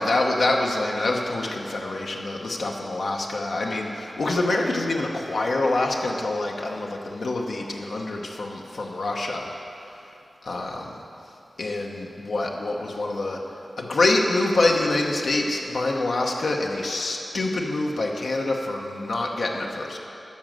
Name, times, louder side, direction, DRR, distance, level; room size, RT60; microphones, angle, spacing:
voice 1, 0.0-9.6 9.9-10.1 10.4-10.9 11.6-13.4 13.8-20.0, left 2 dB, 85° left, -1 dB, 0.9 m, -26 dB
12.5 x 5.0 x 7.5 m, 2.9 s
wide cardioid pair, 85°, 0 cm